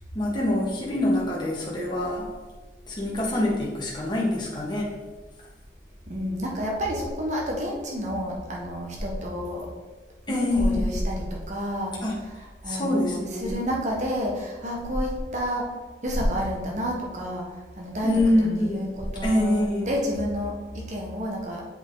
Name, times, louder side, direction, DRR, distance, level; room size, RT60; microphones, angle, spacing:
voice 1, 0.1-2.3 2.9-4.9 10.3-10.9 12.0-12.2 12.7-13.5 18.0-18.9 19.2-19.9, left 1 dB, 25° left, -4 dB, 1.6 m, -25 dB
voice 2, 6.1-9.7 10.3-11.9 12.2-15.7 16.0-21.6, equal, 40° right, -1 dB, 1.4 m, -29 dB
7.8 x 5.0 x 4.0 m, 1.3 s
head